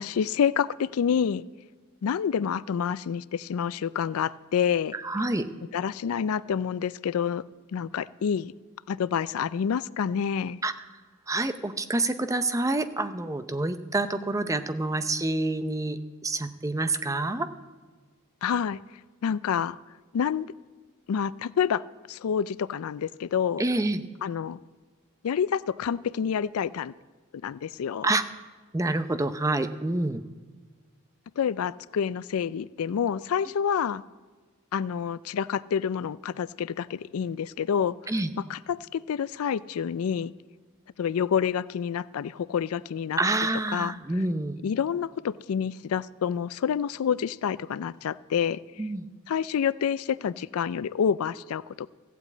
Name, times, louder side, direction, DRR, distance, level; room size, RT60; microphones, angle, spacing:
voice 1, 0.0-1.4 2.0-4.9 5.7-7.4 7.7-8.5 8.9-10.6 18.4-18.8 19.2-19.8 20.1-20.5 21.1-23.6 24.2-24.6 25.2-26.9 27.4-28.1 31.4-34.0 34.7-40.3 41.0-43.2 43.7-43.9 44.6-48.9 49.3-51.9, left 7 dB, 80° left, 19 dB, 0.4 m, -28 dB
voice 2, 4.9-5.5 10.6-10.7 11.3-17.5 23.6-24.0 28.0-28.2 28.7-30.2 38.1-38.3 43.2-44.6 48.8-49.1, right 2 dB, 15° right, 10 dB, 0.6 m, -27 dB
15.0 x 8.3 x 8.4 m, 1.4 s
head